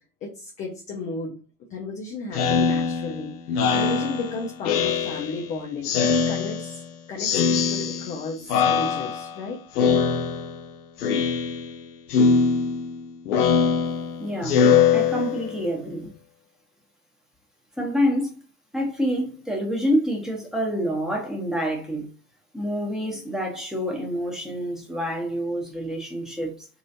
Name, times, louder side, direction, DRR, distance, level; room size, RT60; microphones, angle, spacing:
voice 1, 0.2-1.3 1.7-3.3 3.7-5.9 6.3-6.8 7.1-9.6, left 3 dB, 20° left, 0.3 m, -33 dB
Speech synthesizer, 2.3-5.5 5.8-6.9 7.2-8.2 8.5-9.4 9.8-10.7 11.0-11.8 12.1-15.6, left 6 dB, 70° left, 0.6 m, -22 dB
voice 2, 14.2-14.6 14.9-16.1 17.8-18.3 18.7-22.1 22.5-26.7, equal, ahead, 0.8 m, -27 dB
3.0 x 2.7 x 2.6 m
figure-of-eight pair, 80°, 48 cm